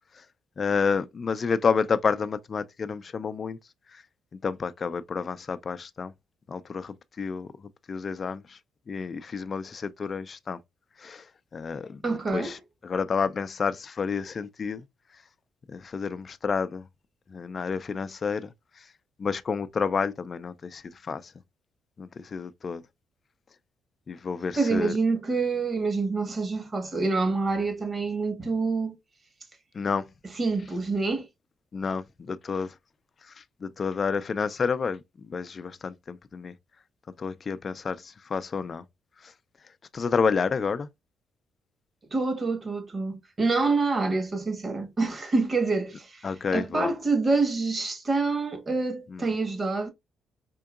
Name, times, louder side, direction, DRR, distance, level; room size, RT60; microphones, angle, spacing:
voice 1, 0.6-3.6 3.9-4.0 4.4-6.1 6.5-7.5 7.9-8.6 8.9-10.6 11.0-11.3 11.5-14.8 15.7-16.9 17.3-18.9 19.2-21.3 22.0-22.8 24.1-25.0 29.7-30.1 31.7-32.7 33.3-36.5 37.2-38.8 39.2-39.3 39.9-40.9 46.2-46.9 49.1-49.3, left 5 dB, 40° left, 0.4 m, -30 dB
voice 2, 12.0-12.6 24.6-29.0 30.4-31.3 42.1-49.9, right 3 dB, 35° right, 1.3 m, -27 dB
4.5 x 2.7 x 2.4 m
cardioid pair, 90°, 0 cm